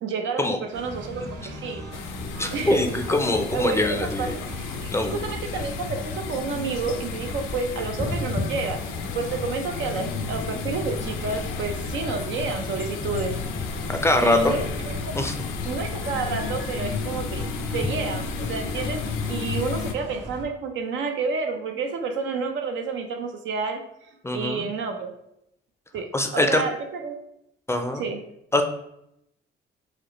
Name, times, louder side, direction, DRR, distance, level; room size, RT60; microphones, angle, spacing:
voice 1, 0.0-1.8 2.5-4.4 4.8-13.4 14.2-15.1 15.6-17.5 17.7-19.0 19.3-23.8 24.3-25.1 25.9-27.2 27.9-28.2, right 4 dB, 75° right, 4 dB, 0.6 m, -30 dB
sound 1, 0.7-20.5, right 1 dB, 60° right, 0.9 m, -39 dB
sound 2, 1.9-19.9, left 6 dB, 80° left, 0.5 m, -32 dB
voice 2, 2.4-4.3 4.9-5.2 13.9-14.6 15.1-15.3 24.2-24.7 26.1-26.6 27.7-28.0 28.5-28.6, left 2 dB, 15° left, 5 dB, 0.4 m, -23 dB
4.9 x 2.2 x 3.0 m, 0.79 s
cardioid pair, 90°, 20 cm